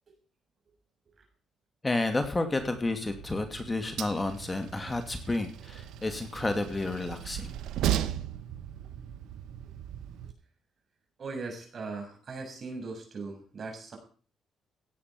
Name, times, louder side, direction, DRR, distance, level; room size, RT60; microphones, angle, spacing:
voice 1, 1.8-7.5, left 2 dB, 20° left, 7 dB, 2.3 m, -31 dB
Train, 2.6-10.3, right 11 dB, 85° right, 1.2 m, -36 dB
voice 2, 11.2-14.0, right 3 dB, 45° right, 3 dB, 7.2 m, -39 dB
17.0 x 8.8 x 6.0 m, 0.41 s
cardioid pair, 90°, 0 cm